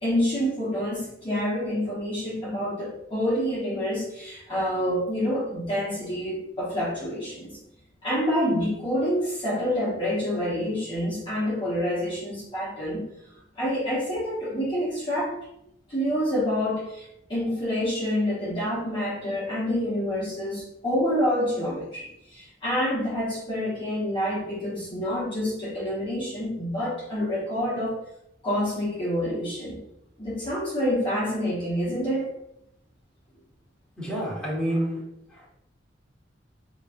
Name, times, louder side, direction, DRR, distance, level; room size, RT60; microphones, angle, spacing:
voice 1, 0.0-7.6 8.0-13.1 13.5-15.4 15.9-28.0 28.4-29.8 30.2-32.3, equal, 25° left, -8 dB, 1.2 m, -27 dB
voice 2, 34.0-35.0 35.3-35.5, equal, 5° left, -6 dB, 1.5 m, -28 dB
5.1 x 3.0 x 2.6 m, 0.81 s
head